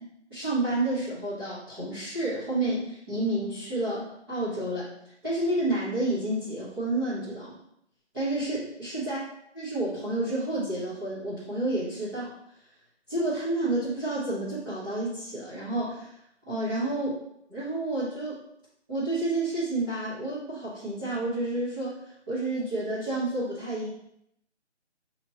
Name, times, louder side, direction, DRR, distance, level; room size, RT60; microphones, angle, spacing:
voice 1, 0.3-4.9 5.2-7.6 8.1-9.2 9.6-12.3 13.1-16.1 16.5-17.2 17.5-18.4 18.9-22.0 22.3-23.9, right 2 dB, 20° right, -13 dB, 0.9 m, -30 dB
5.0 x 3.0 x 2.8 m, 0.75 s
figure-of-eight pair, 165°, 36 cm